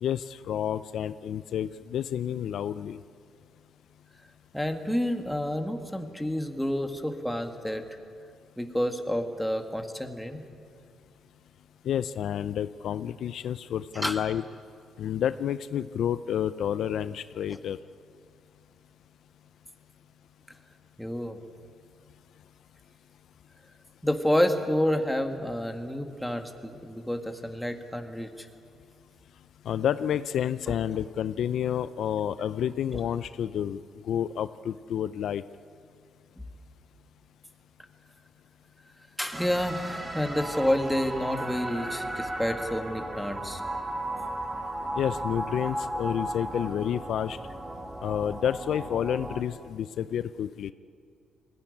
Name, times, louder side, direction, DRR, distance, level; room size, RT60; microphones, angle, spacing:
voice 1, 0.0-3.0 11.8-14.4 15.0-17.8 29.7-35.4 45.0-47.4 48.0-50.7, left 9 dB, 70° left, 14 dB, 0.5 m, -30 dB
voice 2, 4.5-7.8 8.6-10.4 13.9-14.2 21.0-21.4 24.0-28.5 32.9-33.0 39.2-43.6 44.2-44.3, equal, 5° left, 5 dB, 1.9 m, -29 dB
sound 1, 39.3-49.4, right 1 dB, 20° right, 2.2 m, -35 dB
21.0 x 16.0 x 9.8 m, 2.3 s
cardioid pair, 90°, 0 cm